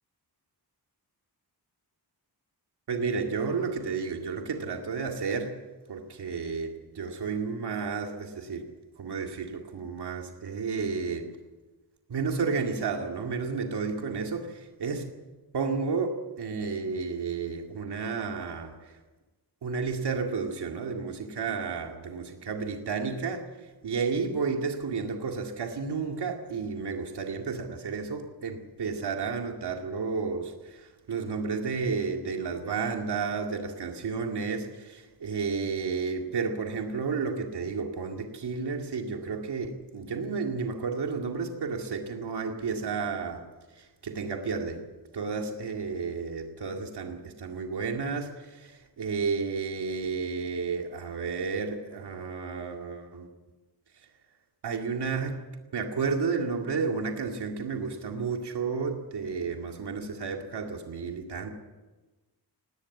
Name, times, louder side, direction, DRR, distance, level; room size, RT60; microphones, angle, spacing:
voice 1, 2.9-5.6 5.9-8.6 9.0-11.3 12.1-15.1 15.5-19.0 19.6-43.4 43.7-44.8 45.1-53.3 54.6-55.4 55.7-61.5, right 5 dB, 80° right, 3 dB, 2.3 m, -32 dB
18.5 x 18.0 x 8.5 m, 1.2 s
wide cardioid pair, 175°, 40 cm